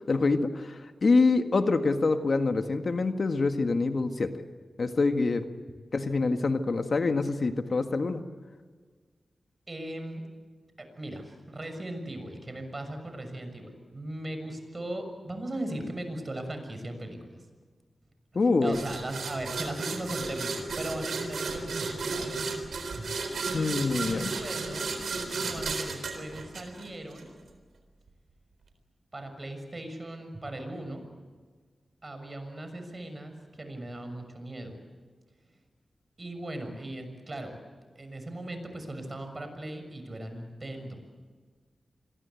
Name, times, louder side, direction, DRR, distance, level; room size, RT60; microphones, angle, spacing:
voice 1, 0.1-4.3 4.8-5.5 5.9-8.2 18.4-18.8 23.5-24.3, left 3 dB, 65° left, 7 dB, 1.7 m, -25 dB
voice 2, 9.7-10.2 10.8-17.4 18.3-22.3 23.0-23.1 23.5-24.9 25.3-27.3 29.1-31.0 32.0-34.7 36.2-37.6 37.9-41.0, right 1 dB, 40° right, 6 dB, 6.5 m, -38 dB
sound 1, 18.7-27.2, right 4 dB, 80° right, 3.9 m, -34 dB
27.0 x 22.0 x 8.4 m, 1.5 s
cardioid pair, 45°, 0 cm